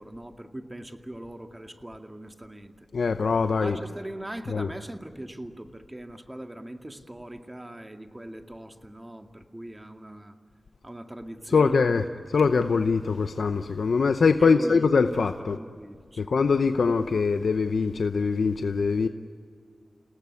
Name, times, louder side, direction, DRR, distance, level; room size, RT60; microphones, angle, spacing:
voice 1, 0.0-2.7 3.5-10.4 10.8-11.9 12.3-12.4 14.4-16.4, right 1 dB, 20° right, 2.2 m, -41 dB
voice 2, 2.9-3.8 4.5-4.7 11.5-12.0 12.3-15.6 16.2-19.1, left 5 dB, 85° left, 0.8 m, -23 dB
29.0 x 18.5 x 9.7 m
cardioid pair, 50°, 0 cm